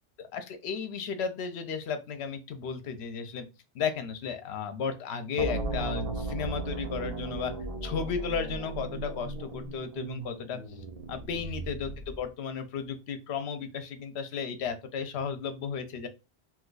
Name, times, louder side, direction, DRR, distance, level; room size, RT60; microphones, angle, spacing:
voice 1, 0.2-3.5 3.7-7.5 7.8-10.6 11.1-16.1, left 6 dB, 70° left, 9 dB, 0.8 m, -34 dB
sound 1, 5.4-12.3, right 2 dB, 45° right, 0.5 m, -36 dB
2.8 x 2.3 x 3.8 m, 0.28 s
omnidirectional pair, 1.2 m